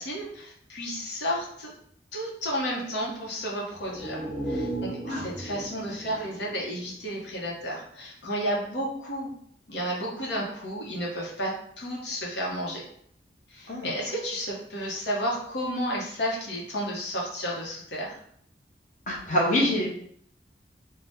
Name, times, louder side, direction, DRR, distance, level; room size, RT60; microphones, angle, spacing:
voice 1, 0.0-1.7 2.1-9.3 9.7-12.8 13.5-18.2, equal, 75° left, -3 dB, 0.9 m, -32 dB
sound 1, 3.7-7.5 7.8-7.9, right 1 dB, 5° right, 1.1 m, -36 dB
voice 2, 19.1-19.9, left 1 dB, 45° left, -4 dB, 0.8 m, -25 dB
2.7 x 2.2 x 3.5 m, 0.66 s
head